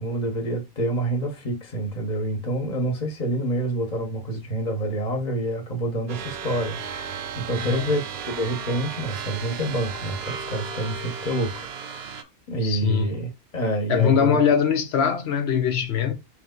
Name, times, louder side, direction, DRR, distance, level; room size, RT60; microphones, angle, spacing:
voice 1, 0.0-12.2 12.5-14.4, right 1 dB, 45° left, 1.2 m, -27 dB
sound 1, 6.1-12.2, right 7 dB, 75° right, 0.8 m, -34 dB
voice 2, 12.6-13.1 13.9-16.1, left 7 dB, 85° left, 1.0 m, -22 dB
3.3 x 3.3 x 3.7 m
omnidirectional pair, 1.0 m